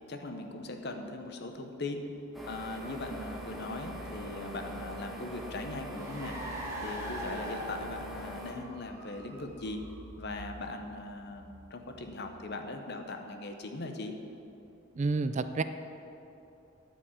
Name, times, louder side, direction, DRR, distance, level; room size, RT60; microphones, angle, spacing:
voice 1, 0.1-2.1 2.4-6.4 6.8-9.8 10.2-14.1, left 2 dB, 55° left, 5 dB, 0.9 m, -40 dB
sound 1, 2.3-8.5, equal, ahead, 1.2 m, -42 dB
Car, 5.7-12.6, equal, 15° right, 1.4 m, -44 dB
voice 2, 15.0-15.6, right 3 dB, 35° right, 10 dB, 0.3 m, -29 dB
9.5 x 5.6 x 8.3 m, 2.9 s
head